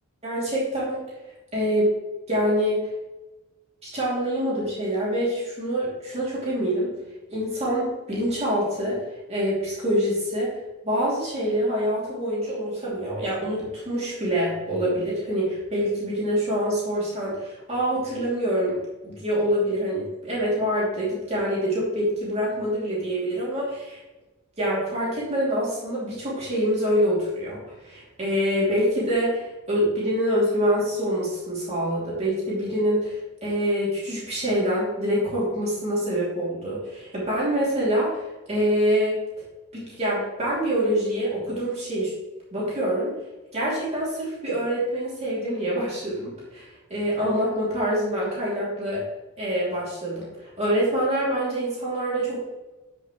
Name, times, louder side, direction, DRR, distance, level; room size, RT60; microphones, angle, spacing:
voice 1, 0.2-1.0 1.5-1.9 2.3-2.9 3.9-6.9 7.3-9.0 9.3-10.5 10.8-18.8 19.0-24.0 24.6-38.2 38.5-39.2 39.7-42.1 42.5-43.1 43.5-49.0 49.4-52.4, equal, 30° right, -7 dB, 3.0 m, -25 dB
12.0 x 6.0 x 3.2 m, 1.1 s
head